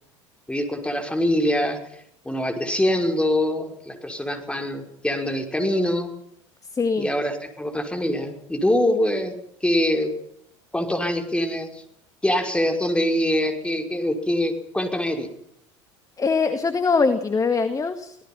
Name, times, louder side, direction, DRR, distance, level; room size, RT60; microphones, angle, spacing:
voice 1, 0.5-6.2 7.0-10.1 10.7-11.8 12.2-15.3, left 1 dB, 5° left, 4 dB, 5.8 m, -24 dB
voice 2, 6.7-7.1 16.2-18.2, left 4 dB, 20° left, 9 dB, 2.0 m, -22 dB
26.0 x 18.0 x 5.8 m, 0.74 s
figure-of-eight pair, 70°, 16 cm